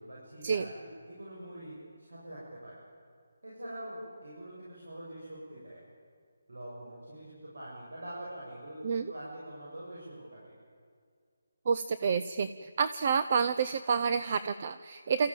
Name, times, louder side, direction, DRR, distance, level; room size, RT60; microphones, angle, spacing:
voice 1, 0.0-2.8 3.4-5.8 6.5-10.5, right 1 dB, 90° right, -6 dB, 7.6 m, -44 dB
voice 2, 11.7-15.3, right 6 dB, 35° right, 12 dB, 0.5 m, -29 dB
27.5 x 14.5 x 9.1 m, 2.1 s
hypercardioid pair, 170°, 0 cm